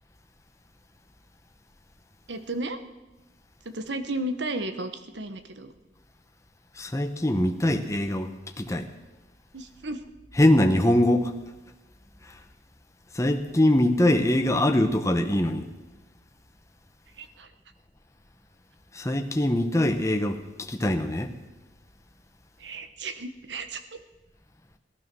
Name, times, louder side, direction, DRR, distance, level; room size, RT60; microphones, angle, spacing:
voice 1, 2.3-2.8 3.6-5.7 9.5-10.0 17.2-17.5 22.6-24.0, right 2 dB, 75° right, 9 dB, 1.2 m, -34 dB
voice 2, 6.8-8.3 8.6-8.9 10.4-11.3 13.1-15.7 18.9-21.3, left 1 dB, 15° left, 5 dB, 0.9 m, -23 dB
18.0 x 12.5 x 6.2 m, 1.1 s
head